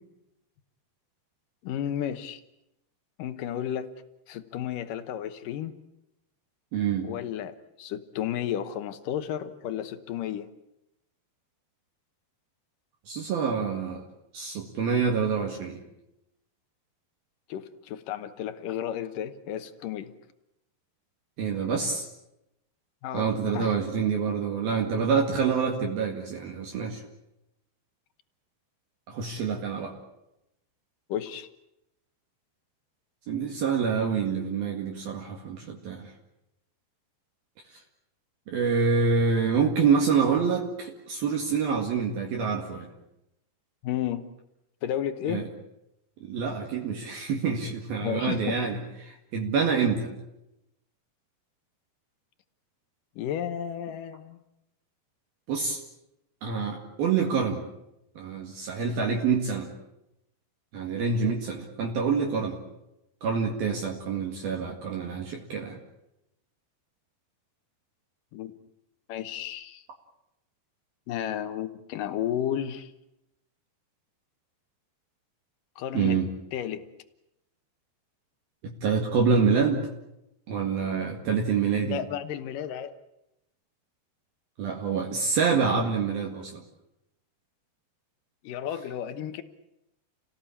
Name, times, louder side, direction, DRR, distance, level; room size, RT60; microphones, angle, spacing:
voice 1, 1.6-2.4 3.2-3.9 4.3-5.7 7.0-10.5 17.5-20.1 23.0-23.8 31.1-31.5 43.8-44.2 44.8-45.4 48.0-48.6 53.2-54.4 68.3-68.5 69.1-69.8 71.1-72.9 75.8-76.2 76.5-76.8 81.8-83.0 88.4-89.4, left 10 dB, 70° left, 10 dB, 2.1 m, -32 dB
voice 2, 6.7-7.1 13.1-14.1 14.3-15.8 21.4-22.1 23.1-27.0 29.1-29.9 33.3-36.1 38.5-42.9 45.3-45.4 46.2-48.8 49.3-50.1 55.5-55.8 56.4-57.6 58.2-59.7 60.7-62.6 63.2-65.8 75.9-76.3 78.6-79.9 80.5-82.0 84.6-86.6, right 5 dB, 60° right, 1 dB, 3.6 m, -26 dB
29.5 x 18.0 x 8.6 m, 0.87 s
omnidirectional pair, 5.2 m